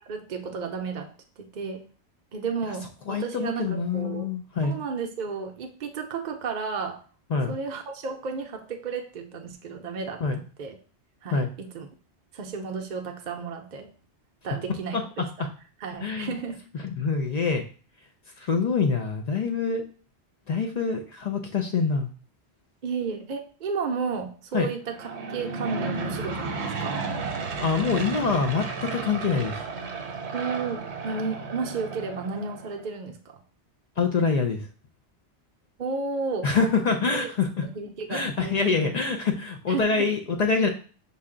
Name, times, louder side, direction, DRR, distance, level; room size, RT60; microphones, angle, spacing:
voice 1, 0.0-1.1 1.4-1.9 2.3-4.3 4.6-7.0 7.5-10.2 10.6-10.8 11.2-11.9 12.3-13.9 14.4-15.5 15.8-16.6 22.8-27.0 30.3-33.4 35.8-36.7 37.1-37.3 37.6-39.0 39.7-40.1, right 5 dB, 50° right, 3 dB, 0.6 m, -33 dB
voice 2, 3.1-4.8 7.3-7.5 10.2-10.4 11.3-11.5 14.9-15.0 16.0-16.3 16.8-17.6 18.4-19.8 20.5-22.1 24.5-24.7 27.6-29.6 34.0-34.6 36.4-37.6 38.1-40.7, left 5 dB, 55° left, 4 dB, 0.4 m, -25 dB
Aircraft / Engine, 24.8-32.8, right 4 dB, 75° right, 1.0 m, -33 dB
5.5 x 2.2 x 3.7 m, 0.39 s
omnidirectional pair, 1.2 m